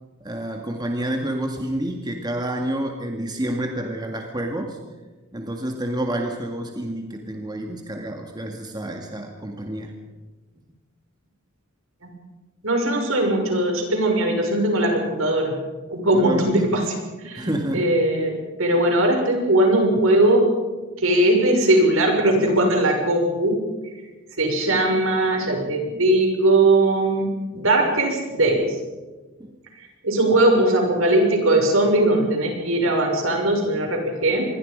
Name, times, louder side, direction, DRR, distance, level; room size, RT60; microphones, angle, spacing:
voice 1, 0.2-4.8 5.3-9.9 16.1-16.6 17.4-17.9 29.4-29.5, right 1 dB, 20° right, 3 dB, 2.0 m, -29 dB
voice 2, 12.6-15.6 15.9-18.3 18.6-20.4 21.0-23.6 24.4-27.3 27.5-28.7 30.0-34.5, right 1 dB, 70° right, 2 dB, 6.4 m, -19 dB
27.0 x 22.5 x 5.4 m, 1.2 s
head